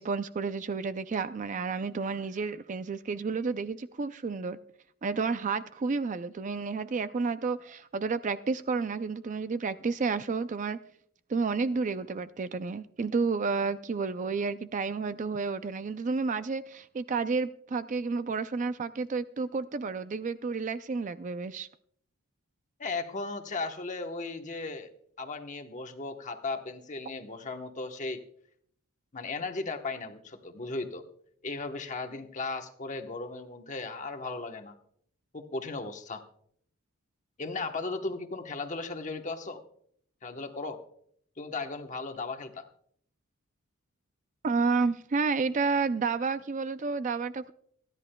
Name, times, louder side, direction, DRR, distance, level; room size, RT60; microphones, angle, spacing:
voice 1, 0.0-4.6 5.0-10.8 11.3-21.7 44.4-47.5, right 4 dB, 35° right, 0.4 m, -31 dB
voice 2, 22.8-24.9 25.2-28.2 29.1-31.0 31.4-34.8 35.3-36.2 37.4-39.6 40.2-40.8 41.4-42.7, left 3 dB, 35° left, 1.0 m, -36 dB
27.5 x 10.5 x 2.2 m
head